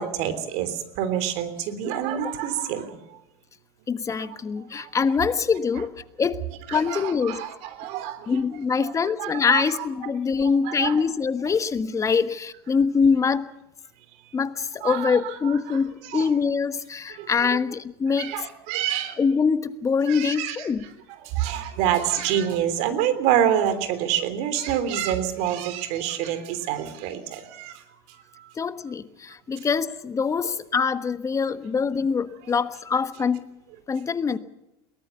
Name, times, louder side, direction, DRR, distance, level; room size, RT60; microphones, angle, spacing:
voice 1, 0.0-3.0 4.2-4.3 4.7-4.9 6.7-8.4 8.8-9.8 10.4-11.0 14.8-16.3 17.2-17.6 18.2-19.2 20.1-20.9 21.2-27.8 28.4-28.5, right 10 dB, 60° right, 11 dB, 3.3 m, -27 dB
voice 2, 3.9-5.9 6.2-6.4 6.7-7.4 8.3-13.5 14.3-18.5 19.2-20.9 28.6-33.5 33.9-34.4, left 5 dB, 25° left, 12 dB, 1.3 m, -24 dB
22.5 x 18.5 x 7.0 m, 0.92 s
hypercardioid pair, 95°, 13 cm